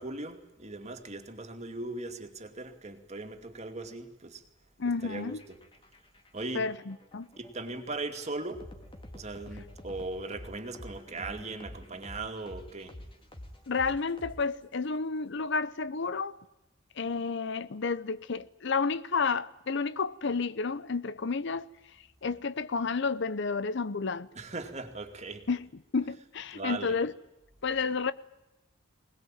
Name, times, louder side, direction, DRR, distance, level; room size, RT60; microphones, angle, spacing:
voice 1, 0.0-4.4 5.0-5.4 6.3-6.6 7.4-8.7 9.1-13.0 24.3-25.5 26.5-27.0, right 2 dB, 35° right, 2.5 m, -39 dB
voice 2, 4.8-5.4 6.5-7.3 13.7-16.3 17.0-21.7 22.2-24.3 25.5-25.6 25.9-27.1 27.6-28.1, left 4 dB, 60° left, 0.8 m, -31 dB
sound 1, 5.1-14.8, left 1 dB, 25° left, 2.8 m, -48 dB
22.0 x 20.0 x 9.0 m
head